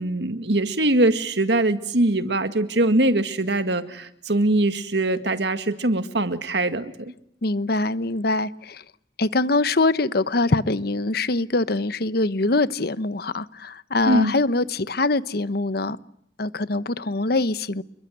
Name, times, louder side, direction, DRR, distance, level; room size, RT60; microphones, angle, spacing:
voice 1, 0.0-7.1 14.1-14.3, right 2 dB, 70° right, 2.0 m, -22 dB
voice 2, 7.4-8.8 9.2-16.0 16.4-17.8, left 2 dB, 60° left, 1.1 m, -23 dB
28.5 x 22.5 x 9.4 m
head